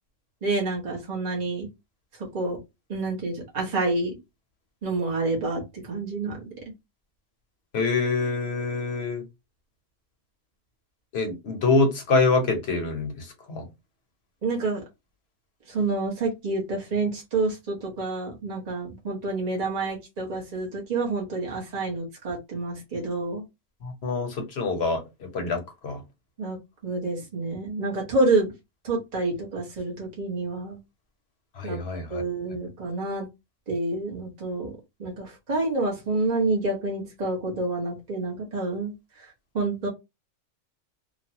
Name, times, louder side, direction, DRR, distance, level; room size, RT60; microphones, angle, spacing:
voice 1, 0.4-1.7 2.3-2.6 2.9-4.2 4.8-5.6 5.9-6.4 14.4-14.8 15.7-23.4 26.4-26.6 26.8-28.5 28.8-30.8 31.6-31.8 32.1-33.3 33.7-34.7 35.0-38.9 39.5-39.9, right 3 dB, 30° right, 1.0 m, -28 dB
voice 2, 7.7-9.2 11.1-13.6 23.8-25.0 25.3-26.0 31.6-32.2, left 3 dB, 50° left, 1.0 m, -25 dB
3.1 x 2.3 x 2.8 m
omnidirectional pair, 1.5 m